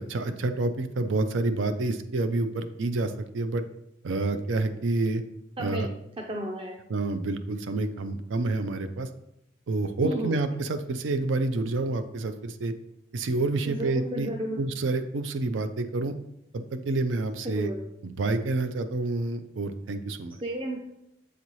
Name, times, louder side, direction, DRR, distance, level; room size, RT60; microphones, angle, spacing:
voice 1, 0.0-3.6 4.0-5.2 5.6-5.9 6.9-9.1 9.7-12.7 13.1-14.3 14.6-16.2 16.5-17.7 18.0-20.4, right 2 dB, 85° right, 10 dB, 0.5 m, -28 dB
voice 2, 6.3-6.8 10.0-10.3 13.6-14.6 17.4-17.8 20.4-20.8, right 1 dB, 30° right, 0 dB, 0.5 m, -32 dB
8.1 x 4.1 x 3.1 m, 0.82 s
head